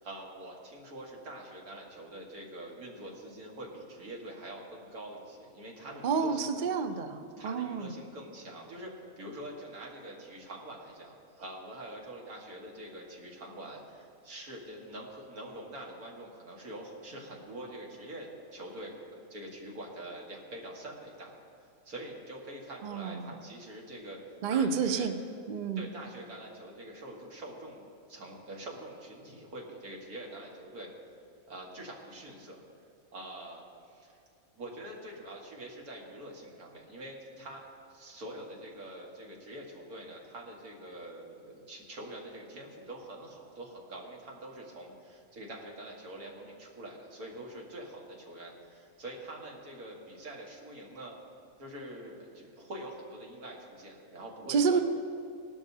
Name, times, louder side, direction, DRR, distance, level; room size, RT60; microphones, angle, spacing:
voice 1, 0.0-6.7 7.4-21.3 21.9-24.2 24.5-25.1 25.8-30.9 31.5-32.6 33.1-34.2 34.6-37.6 37.9-51.1 51.6-54.8, right 1 dB, 85° right, -1 dB, 2.1 m, -45 dB
voice 2, 6.0-7.9 22.8-23.4 24.4-25.2 25.5-25.9 54.5-54.8, right 5 dB, 55° right, 8 dB, 0.5 m, -29 dB
18.0 x 12.0 x 2.8 m, 2.5 s
omnidirectional pair, 1.5 m